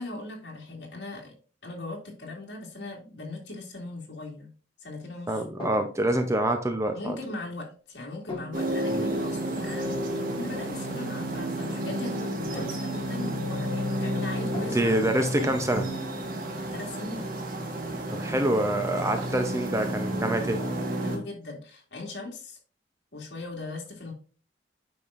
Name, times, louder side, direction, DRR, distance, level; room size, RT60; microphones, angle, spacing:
voice 1, 0.0-1.3 1.6-4.5 4.8-5.4 6.9-15.6 16.7-17.3 21.0-22.6 23.1-24.1, left 2 dB, 65° left, -1 dB, 2.5 m, -39 dB
voice 2, 5.3-7.2 8.9-9.1 14.7-15.8 18.1-20.6, right 1 dB, 15° right, 6 dB, 0.6 m, -26 dB
sound 1, 5.6-6.3 8.3-8.9 10.8-11.0 12.6-13.3 14.5-15.2 15.7-16.7, right 1 dB, 25° left, 2.0 m, -39 dB
sound 2, 8.5-21.2, right 1 dB, 50° right, 1.5 m, -31 dB
8.9 x 5.6 x 2.5 m, 0.38 s
head